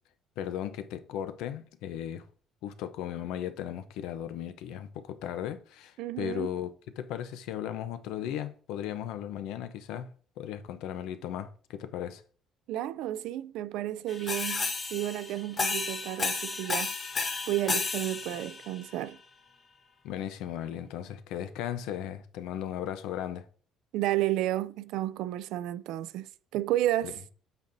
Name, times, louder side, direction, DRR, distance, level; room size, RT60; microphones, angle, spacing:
voice 1, 0.4-2.3 2.6-10.1 10.4-12.2 20.0-23.5 27.0-27.1, left 10 dB, 80° left, 0.6 m, -36 dB
voice 2, 6.0-6.5 12.7-16.9 17.5-19.2 23.9-27.2, right 14 dB, 75° right, 0.3 m, -32 dB
sound 1, 14.1-18.9, left 4 dB, 25° left, 0.7 m, -32 dB
8.1 x 5.2 x 2.6 m
cardioid pair, 175°, 0 cm